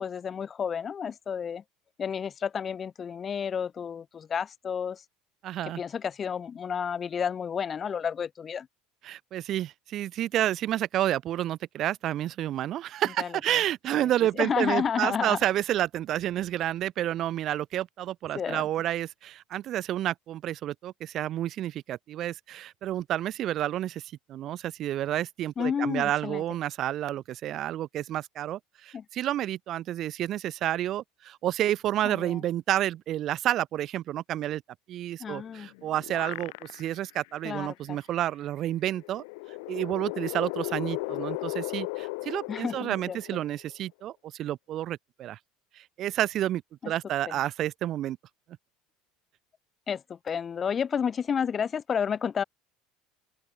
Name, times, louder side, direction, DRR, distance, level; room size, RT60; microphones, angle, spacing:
voice 1, 0.0-1.6 2.0-5.0 5.8-8.7 13.2-13.3 13.9-14.1 14.4-15.4 18.3-18.6 25.6-26.4 28.9-29.0 32.0-32.4 35.2-35.7 37.4-38.0 42.5-43.2 46.8-46.9 49.9-52.4, left 7 dB, 30° left, 4.3 m, -31 dB
voice 2, 5.4-5.8 9.0-24.0 24.3-34.6 34.9-39.2 39.7-45.4 45.8-48.2, right 12 dB, 45° right, 1.6 m, -30 dB
sound 1, 35.5-37.1 37.5-37.6 38.9-43.7, left 29 dB, 80° left, 6.5 m, -36 dB
open air
supercardioid pair, 120°, 0 cm